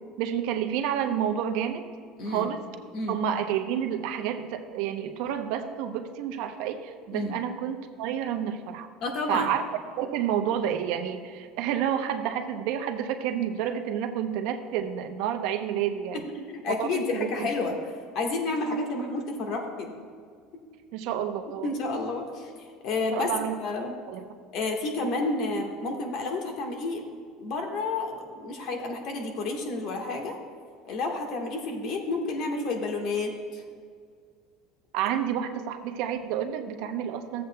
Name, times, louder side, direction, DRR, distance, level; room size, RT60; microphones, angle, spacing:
voice 1, 0.2-1.9 2.3-2.6 3.1-8.9 9.3-9.6 10.0-16.2 16.8-17.5 20.9-21.7 23.1-23.5 24.1-24.3 34.9-37.5, right 9 dB, 70° right, 6 dB, 0.7 m, -29 dB
voice 2, 2.2-2.5 2.9-3.2 7.1-7.3 9.0-9.5 16.1-17.8 18.1-19.9 20.5-20.6 21.6-23.3 23.6-23.9 24.5-27.1 27.4-30.4 30.8-33.6, left 3 dB, 55° left, 2 dB, 1.4 m, -30 dB
15.0 x 7.7 x 2.2 m, 2.1 s
supercardioid pair, 135°, 0 cm